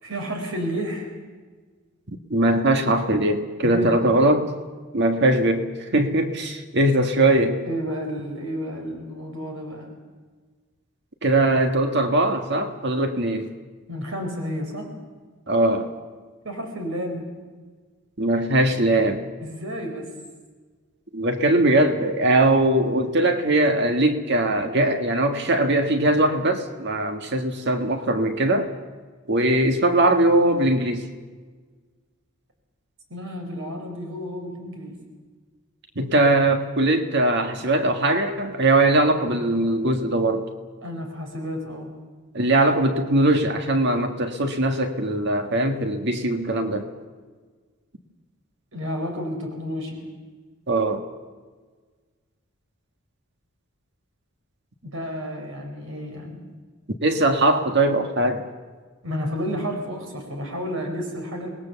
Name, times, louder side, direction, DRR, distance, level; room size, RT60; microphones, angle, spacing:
voice 1, 0.0-1.1 3.6-4.0 7.6-9.9 13.9-14.9 16.4-17.3 19.4-20.1 33.1-35.0 40.8-41.9 48.7-50.1 54.8-56.5 59.0-61.5, equal, 70° right, 3 dB, 4.4 m, -31 dB
voice 2, 2.3-4.5 4.9-7.6 11.2-13.5 15.5-15.9 18.2-19.2 21.1-28.7 29.3-31.1 35.9-40.5 42.3-46.9 50.7-51.0 57.0-58.4, right 1 dB, 55° right, 6 dB, 1.7 m, -21 dB
27.5 x 20.0 x 7.0 m, 1.4 s
head